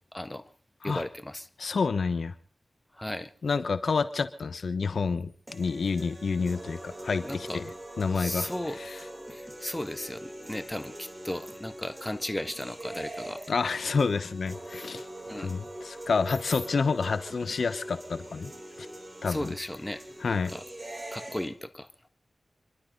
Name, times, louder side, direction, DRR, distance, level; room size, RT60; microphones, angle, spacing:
voice 1, 0.1-0.4 0.8-1.5 2.9-3.3 7.2-7.6 8.1-8.8 9.3-13.4 14.9-15.5 19.3-20.6 21.1-21.9, left 1 dB, 15° left, 10 dB, 1.5 m, -36 dB
voice 2, 1.6-2.3 3.4-7.7 8.0-9.0 13.5-15.0 15.4-18.5 18.8-18.9 19.2-19.5 20.2-20.5, left 4 dB, 80° left, 12 dB, 1.0 m, -29 dB
sound 1, 5.5-21.5, right 1 dB, 20° right, 3.5 m, -43 dB
28.5 x 12.0 x 3.9 m, 0.39 s
wide cardioid pair, 60°, 0 cm